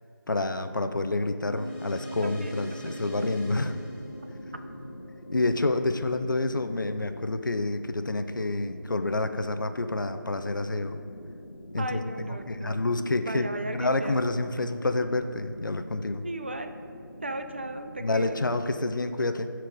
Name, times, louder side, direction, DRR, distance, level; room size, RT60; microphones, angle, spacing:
voice 1, 0.3-3.8 5.3-11.0 11.7-12.0 12.5-16.2 18.0-19.5, left 2 dB, 65° left, 9 dB, 0.7 m, -28 dB
sound 1, 1.5-6.3, equal, 5° left, 1.9 m, -41 dB
voice 2, 2.2-3.0 11.8-12.8 13.2-14.2 16.2-16.7 17.2-18.4, right 1 dB, 30° right, 7 dB, 0.4 m, -36 dB
sound 2, 3.4-18.7, left 1 dB, 80° left, 1.0 m, -46 dB
12.0 x 4.5 x 5.2 m, 2.3 s
figure-of-eight pair, 165°, 11 cm